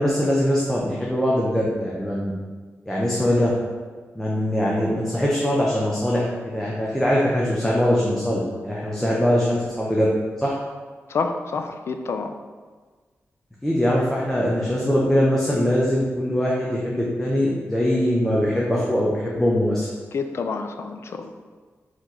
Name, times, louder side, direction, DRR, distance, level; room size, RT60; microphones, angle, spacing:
voice 1, 0.0-2.3 2.9-3.5 4.2-10.1 10.4-10.5 13.6-19.9, equal, 5° left, -5 dB, 0.6 m, -22 dB
voice 2, 11.1-12.3 20.1-21.3, left 4 dB, 60° left, 6 dB, 0.4 m, -28 dB
4.5 x 3.0 x 3.9 m, 1.4 s
wide cardioid pair, 135°, 5 cm